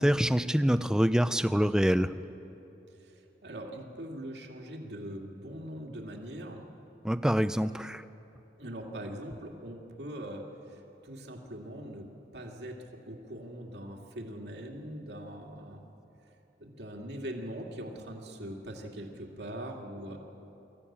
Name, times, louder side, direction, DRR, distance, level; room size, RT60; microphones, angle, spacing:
voice 1, 0.0-2.2 7.0-8.0, equal, 5° right, 12 dB, 0.4 m, -25 dB
voice 2, 3.4-6.6 8.6-12.1 12.3-12.8 13.1-15.8 16.6-20.2, right 1 dB, 75° right, 1 dB, 2.3 m, -41 dB
25.0 x 14.5 x 8.7 m, 3.0 s
head